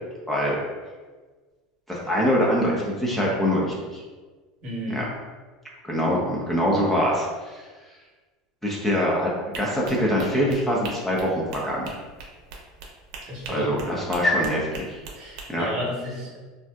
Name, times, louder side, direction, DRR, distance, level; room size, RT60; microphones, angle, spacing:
voice 1, 0.3-0.6 1.9-4.0 4.9-5.1 5.8-7.6 8.6-11.9 13.5-15.0 15.5-15.7, equal, 5° left, -4 dB, 0.6 m, -24 dB
voice 2, 4.6-5.0 13.3-13.7 15.2-16.4, equal, 45° right, -3 dB, 1.0 m, -31 dB
sound 1, 9.5-15.5, right 3 dB, 70° right, 0.6 m, -41 dB
3.3 x 2.5 x 2.3 m, 1.3 s
supercardioid pair, 110°, 3 cm